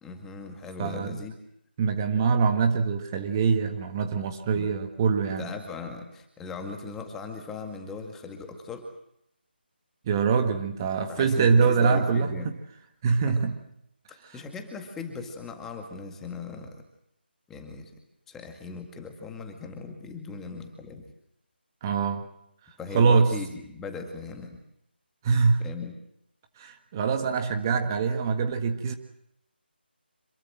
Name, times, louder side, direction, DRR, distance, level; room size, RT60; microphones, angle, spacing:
voice 1, 0.0-1.4 4.6-4.7 5.4-8.9 11.1-12.5 13.1-13.4 14.1-16.8 17.5-17.9 18.3-21.1 22.8-24.6 25.6-26.0, left 4 dB, 5° left, 5 dB, 2.0 m, -39 dB
voice 2, 0.8-1.2 1.8-5.5 10.1-12.5 13.0-13.6 14.2-14.4 21.8-22.3 22.9-23.3 25.2-25.7 26.6-28.9, right 5 dB, 20° right, 7 dB, 1.6 m, -24 dB
27.0 x 22.0 x 7.7 m, 0.76 s
figure-of-eight pair, 165°, 6 cm